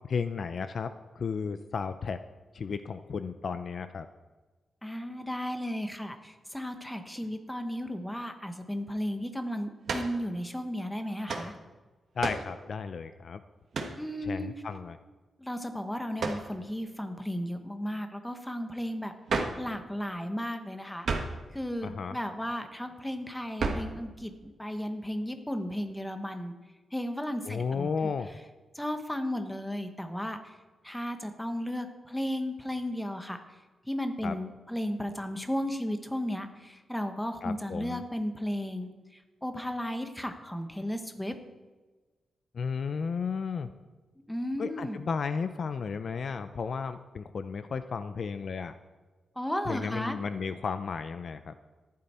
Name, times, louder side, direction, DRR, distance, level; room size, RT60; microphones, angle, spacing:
voice 1, 0.1-2.2 2.5-4.1 12.2-13.4 14.3-14.9 21.8-22.2 27.5-28.3 34.2-34.3 37.4-38.0 42.5-43.7 44.6-48.7 49.7-51.5, left 5 dB, 50° left, 11 dB, 0.5 m, -33 dB
voice 2, 4.8-11.5 14.0-14.5 15.4-21.1 21.5-26.5 26.9-27.9 28.7-30.6 30.8-33.6 33.8-41.3 44.3-45.0 49.4-50.2, equal, 5° left, 7 dB, 1.0 m, -34 dB
sound 1, 9.9-10.2 11.3-11.5 12.2-12.5 13.7-14.0 16.2-16.5 19.3-19.7 21.0-21.4 23.6-24.0, right 4 dB, 55° right, 1.5 m, -31 dB
14.0 x 11.5 x 4.3 m, 1.3 s
wide cardioid pair, 160°, 0 cm